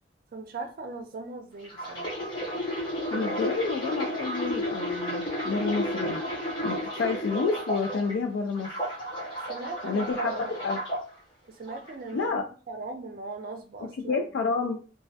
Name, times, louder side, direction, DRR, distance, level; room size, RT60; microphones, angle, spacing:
voice 1, 0.3-2.1 9.5-10.7 11.5-14.2, right 3 dB, 50° right, 0.4 m, -39 dB
sound 1, 1.6-8.1 8.5-11.0 11.7-11.9, equal, 25° left, 0.7 m, -32 dB
voice 2, 3.1-6.2 6.6-8.7 9.8-10.8 12.1-12.4 14.1-14.8, left 4 dB, 65° left, 0.3 m, -29 dB
2.2 x 2.1 x 2.7 m
head